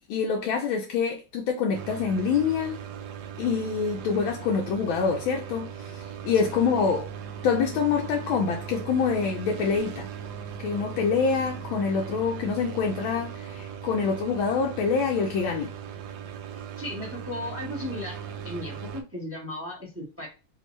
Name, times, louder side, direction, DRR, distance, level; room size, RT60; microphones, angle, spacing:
voice 1, 0.1-2.8 3.4-7.1 7.4-10.1 10.6-15.7, left 5 dB, 80° left, 1.4 m, -26 dB
sound 1, 1.7-19.0, right 8 dB, 70° right, 1.0 m, -38 dB
voice 2, 16.8-18.2 18.4-20.3, left 1 dB, 10° right, 0.9 m, -35 dB
3.4 x 2.8 x 3.1 m
omnidirectional pair, 2.2 m